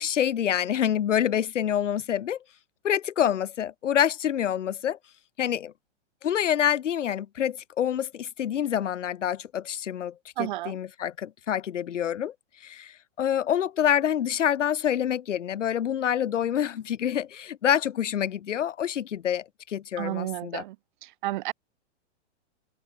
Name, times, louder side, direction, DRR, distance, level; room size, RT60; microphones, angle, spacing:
voice 1, 0.0-2.4 2.8-5.0 5.4-5.7 6.2-12.3 12.6-20.6, left 10 dB, 85° left, 2.6 m, -27 dB
voice 2, 10.4-10.8 20.0-20.8 21.0-21.5, right 17 dB, 40° right, 2.2 m, -31 dB
hypercardioid pair, 165°, 36 cm